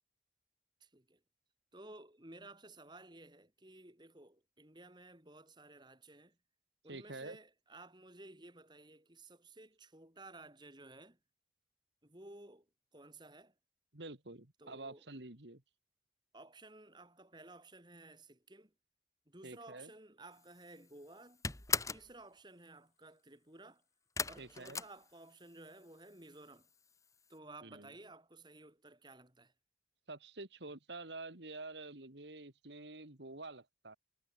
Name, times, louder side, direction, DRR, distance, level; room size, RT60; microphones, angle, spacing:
voice 1, 0.8-1.2 1.7-6.4 6.8-11.2 12.0-12.7 12.9-13.5 14.6-15.0 16.3-18.7 19.3-21.4 21.9-23.8 24.2-26.7 27.3-29.5, right 2 dB, 25° right, 3.4 m, -55 dB
voice 2, 6.9-7.4 13.9-15.6 19.4-19.9 24.4-24.8 27.6-27.9 30.1-34.0, right 2 dB, 75° right, 2.4 m, -48 dB
sound 1, 20.4-20.8 21.1-22.1 24.2-25.6 25.9-26.6 26.9-27.0 27.3-27.4, left 5 dB, 20° left, 2.0 m, -38 dB
head